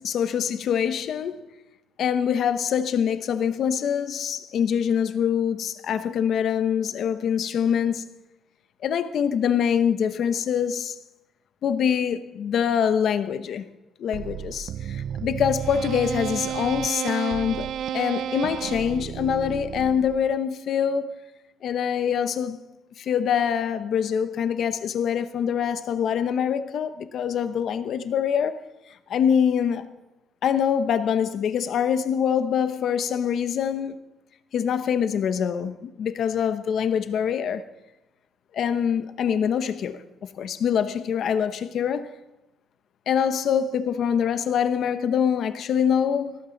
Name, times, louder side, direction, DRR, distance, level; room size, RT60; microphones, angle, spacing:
voice 1, 0.0-1.4 2.0-8.1 8.8-11.0 11.6-13.7 14.0-17.7 17.9-21.2 21.6-22.6 23.0-28.6 29.1-29.9 30.4-33.9 34.5-37.7 38.5-42.1 43.1-46.4, left 8 dB, 50° left, 0.9 m, -24 dB
sound 1, 14.1-20.4, right 10 dB, 60° right, 0.4 m, -32 dB
17.5 x 14.5 x 4.0 m
cardioid pair, 175°, 0 cm